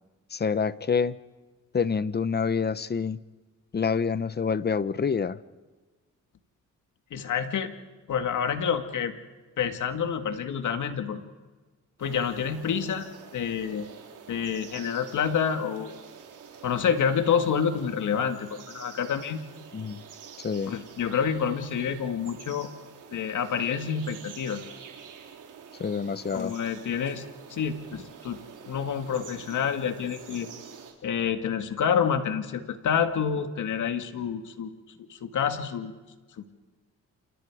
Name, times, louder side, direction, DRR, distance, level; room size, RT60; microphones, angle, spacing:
voice 1, 0.3-1.2 1.7-3.2 3.7-5.4 19.7-20.0 20.4-20.8 25.8-26.6, left 5 dB, 30° left, 16 dB, 0.9 m, -27 dB
voice 2, 7.1-7.7 8.1-9.1 9.6-11.2 12.0-13.9 14.3-15.9 16.6-19.4 20.7-22.7 23.1-24.6 26.3-27.2 27.5-28.4 28.7-30.5 31.0-34.7 35.1-35.9, left 7 dB, 70° left, 7 dB, 2.2 m, -28 dB
sound 1, 12.0-30.9, right 7 dB, 75° right, 4.5 m, -47 dB
29.5 x 28.0 x 5.0 m, 1.3 s
cardioid pair, 90°, 31 cm